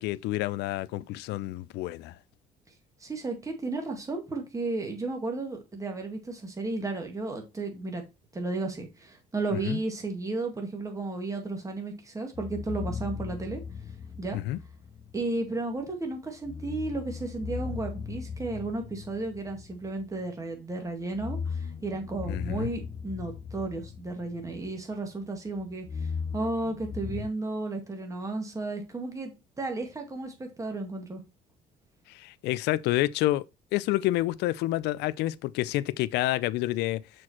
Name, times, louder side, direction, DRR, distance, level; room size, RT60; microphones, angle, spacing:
voice 1, 0.0-2.2 9.6-9.8 14.3-14.6 22.3-22.7 32.1-33.4 33.7-37.0, left 16 dB, 80° left, 0.4 m, -28 dB
voice 2, 3.0-8.0 8.3-13.6 14.2-14.4 15.1-25.9 26.3-29.3 29.6-31.2, right 2 dB, 20° right, 2.2 m, -33 dB
sound 1, 12.3-15.3 16.4-20.3 21.0-25.0 25.3-27.3, left 6 dB, 30° left, 0.7 m, -38 dB
6.4 x 4.6 x 4.3 m
cardioid pair, 110°, 17 cm